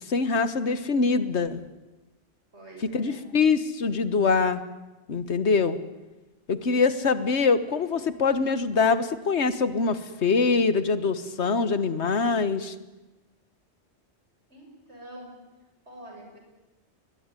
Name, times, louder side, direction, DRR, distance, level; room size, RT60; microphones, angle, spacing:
voice 1, 0.1-1.6 2.9-4.6 5.1-5.8 6.5-12.7, left 4 dB, 75° left, 13 dB, 1.6 m, -24 dB
voice 2, 2.5-3.3 14.5-15.3 15.9-16.4, right 1 dB, 75° right, 1 dB, 7.4 m, -46 dB
22.0 x 22.0 x 9.9 m, 1.1 s
omnidirectional pair, 1.2 m